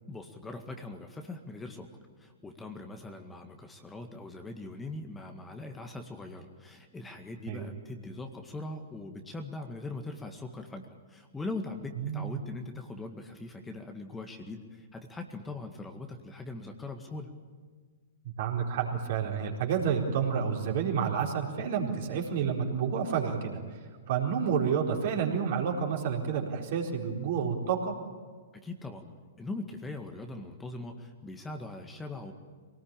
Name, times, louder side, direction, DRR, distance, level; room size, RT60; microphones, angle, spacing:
voice 1, 0.1-1.9 2.2-17.3 28.6-29.1 29.4-32.3, left 2 dB, 10° left, 4 dB, 1.9 m, -41 dB
voice 2, 12.0-12.4 18.4-23.6 24.1-27.9, right 7 dB, 50° right, 0 dB, 4.2 m, -29 dB
24.5 x 18.5 x 8.9 m, 1.5 s
figure-of-eight pair, 115°, 0 cm